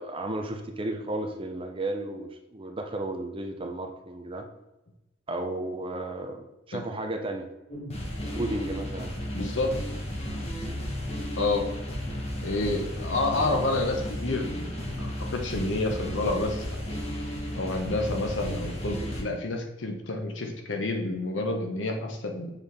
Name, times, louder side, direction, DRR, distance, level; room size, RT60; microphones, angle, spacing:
voice 1, 0.0-4.5 5.3-7.5 8.3-9.1, right 2 dB, 30° right, 4 dB, 0.7 m, -33 dB
sound 1, 7.7-19.2, equal, 35° left, 1.2 m, -34 dB
voice 2, 9.3-9.7 11.4-11.6 12.4-16.8 17.5-22.5, left 2 dB, 90° left, 3 dB, 1.1 m, -29 dB
7.1 x 4.1 x 3.5 m, 0.96 s
head